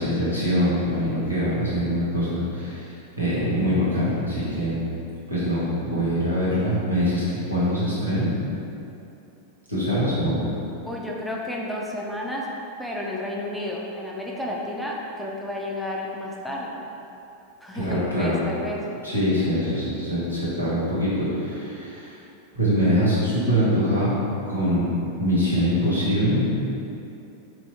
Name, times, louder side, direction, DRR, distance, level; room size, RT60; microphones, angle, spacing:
voice 1, 0.0-4.8 5.3-8.3 9.7-10.4 17.7-18.4 19.0-22.2 22.5-24.2 24.5-24.9 25.2-26.7, equal, 90° left, -10 dB, 1.1 m, -23 dB
voice 2, 10.9-12.5 12.8-16.8 17.6-18.8, left 1 dB, ahead, -4 dB, 0.4 m, -31 dB
4.4 x 3.0 x 2.6 m, 2.8 s
figure-of-eight pair, 90°, 0 cm